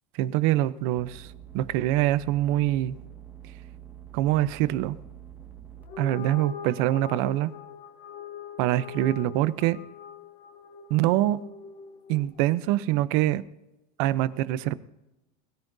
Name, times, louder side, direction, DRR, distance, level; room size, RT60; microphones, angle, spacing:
voice 1, 0.2-1.3 1.5-3.0 4.1-5.0 6.0-7.5 8.6-9.8 10.9-11.4 12.1-13.4 14.0-14.8, right 14 dB, 60° right, 0.7 m, -24 dB
sound 1, 1.0-5.8, right 10 dB, 10° right, 1.8 m, -46 dB
sound 2, 5.8-12.4, left 7 dB, 35° left, 0.9 m, -42 dB
21.5 x 13.5 x 2.7 m
supercardioid pair, 145°, 21 cm